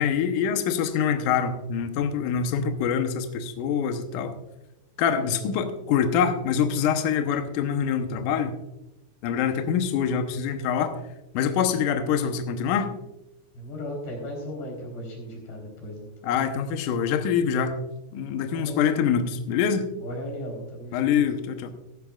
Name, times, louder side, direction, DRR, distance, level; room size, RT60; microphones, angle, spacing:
voice 1, 0.0-4.3 5.0-8.5 9.2-10.9 11.3-12.9 16.2-17.8 18.1-19.9 20.9-21.7, left 7 dB, 85° left, 7 dB, 1.8 m, -25 dB
voice 2, 13.5-16.3 18.5-18.9 20.0-21.1, left 1 dB, 70° left, 0 dB, 5.9 m, -36 dB
15.5 x 13.0 x 2.4 m, 0.91 s
omnidirectional pair, 5.1 m